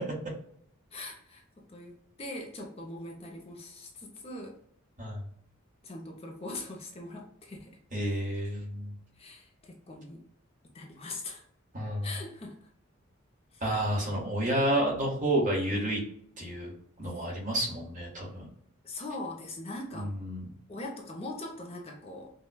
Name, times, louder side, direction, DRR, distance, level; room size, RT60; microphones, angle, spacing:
voice 1, 0.9-1.4 1.7-4.6 5.8-7.8 9.2-10.2 10.7-11.4 12.0-12.7 13.5-13.6 17.1-17.2 18.8-20.1 20.7-22.3, left 2 dB, 30° left, 1 dB, 0.6 m, -41 dB
voice 2, 7.9-8.9 11.7-12.1 13.6-16.0 16.4-16.7 17.0-18.5 19.9-20.5, right 1 dB, 40° right, -3 dB, 1.3 m, -30 dB
5.3 x 2.2 x 2.2 m, 0.67 s
head